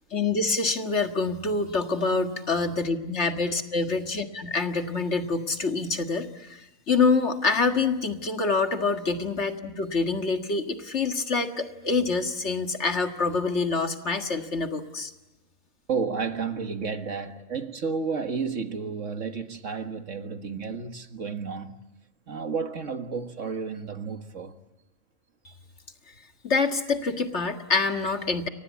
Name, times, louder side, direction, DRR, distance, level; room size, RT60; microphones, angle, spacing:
voice 1, 0.1-15.1 26.4-28.5, left 4 dB, 55° left, 2.0 m, -26 dB
voice 2, 15.9-21.8 22.3-24.6, right 5 dB, 65° right, 1.9 m, -32 dB
29.5 x 24.5 x 8.3 m
omnidirectional pair, 1.4 m